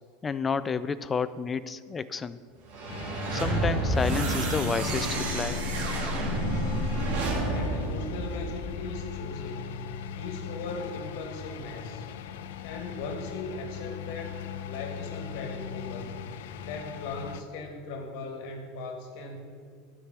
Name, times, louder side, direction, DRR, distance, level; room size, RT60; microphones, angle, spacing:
voice 1, 0.2-2.4 3.3-5.6, left 5 dB, 20° left, 14 dB, 0.3 m, -30 dB
sound 1, 2.7-8.9, right 1 dB, 75° right, 1.9 m, -29 dB
sound 2, 2.9-17.4, left 9 dB, 80° left, 0.5 m, -39 dB
voice 2, 7.1-12.1 12.6-14.4 14.6-16.2 16.6-19.4, left 3 dB, 65° left, 2 dB, 1.6 m, -38 dB
12.0 x 4.8 x 6.0 m, 2.1 s
supercardioid pair, 135°, 0 cm